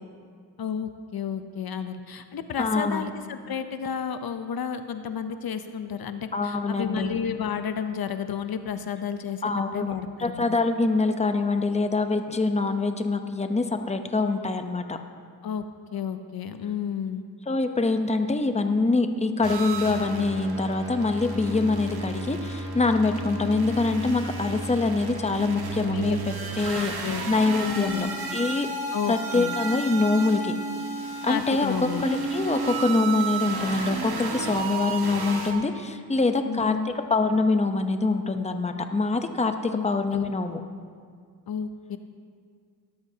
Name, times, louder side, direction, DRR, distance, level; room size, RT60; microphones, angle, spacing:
voice 1, 0.6-9.4 9.7-10.5 15.4-15.6 15.9-17.2 25.9-27.3 27.6-28.1 28.9-29.5 31.3-32.0 36.5-36.9 39.7-40.3 41.5-42.0, left 7 dB, 65° left, 9 dB, 0.7 m, -32 dB
voice 2, 2.6-3.1 6.3-7.1 9.4-9.9 10.2-15.0 17.5-28.1 28.3-28.7 29.1-30.5 31.2-40.6, left 3 dB, 15° left, 7 dB, 0.8 m, -25 dB
sound 1, 19.4-35.5, right 3 dB, 70° right, 1.7 m, -33 dB
17.5 x 12.5 x 2.8 m, 2.1 s
cardioid pair, 65°, 39 cm